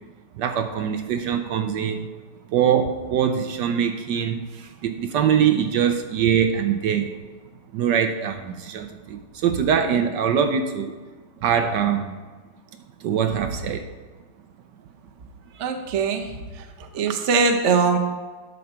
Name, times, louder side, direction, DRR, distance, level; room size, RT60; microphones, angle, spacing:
voice 1, 0.4-2.1 2.5-7.1 7.7-10.9 11.4-12.2 13.0-13.9 15.5-15.7, right 8 dB, 75° right, 8 dB, 1.1 m, -23 dB
voice 2, 15.6-16.3 16.6-18.0, right 5 dB, 55° right, 4 dB, 0.9 m, -22 dB
11.0 x 6.7 x 4.3 m, 1.4 s
omnidirectional pair, 2.2 m